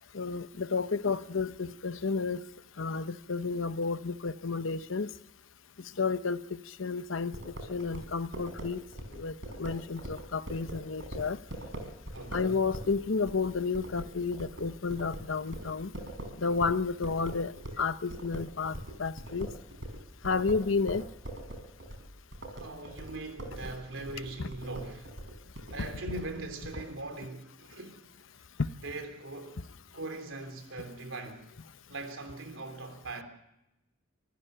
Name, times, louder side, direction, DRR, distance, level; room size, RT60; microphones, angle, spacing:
voice 1, 0.1-2.4 2.8-5.1 6.0-6.4 6.8-8.8 9.1-9.3 9.6-11.4 12.3-15.9 16.4-17.5 17.8-19.5 20.2-21.0 28.6-28.7, left 4 dB, 90° left, 0.8 m, -31 dB
sound 1, 7.3-17.8 18.1-26.8, right 1 dB, 65° right, 5.2 m, -42 dB
voice 2, 12.1-12.5 22.6-25.1 25.7-28.1 28.8-29.6 29.9-31.4 31.9-33.2, right 2 dB, 85° right, 3.2 m, -41 dB
25.5 x 15.0 x 6.7 m
head